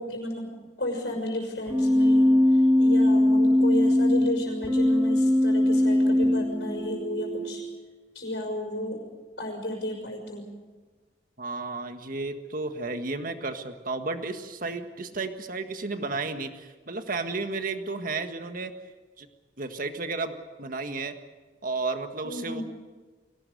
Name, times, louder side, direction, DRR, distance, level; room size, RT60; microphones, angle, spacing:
voice 1, 0.0-7.6 8.1-9.0 9.4-10.5 22.2-22.6, left 1 dB, 70° left, -1 dB, 5.8 m, -33 dB
Keyboard (musical), 1.7-7.6, left 1 dB, 15° right, 1.6 m, -21 dB
voice 2, 11.4-18.7 19.2-19.3 19.6-21.1 21.6-22.6, right 3 dB, 50° right, 7 dB, 1.7 m, -33 dB
23.5 x 18.0 x 8.0 m, 1.3 s
head